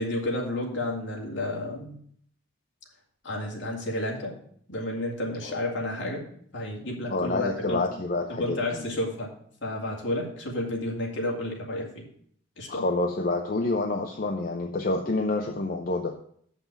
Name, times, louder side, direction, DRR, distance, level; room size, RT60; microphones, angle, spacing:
voice 1, 0.0-2.0 3.2-4.3 4.7-6.2 6.5-7.8 8.3-9.3 9.6-12.0 12.6-12.9, left 1 dB, 60° left, -1 dB, 2.4 m, -31 dB
voice 2, 7.1-8.8 12.7-16.1, left 2 dB, 45° left, 3 dB, 0.7 m, -28 dB
7.4 x 5.8 x 6.8 m, 0.62 s
head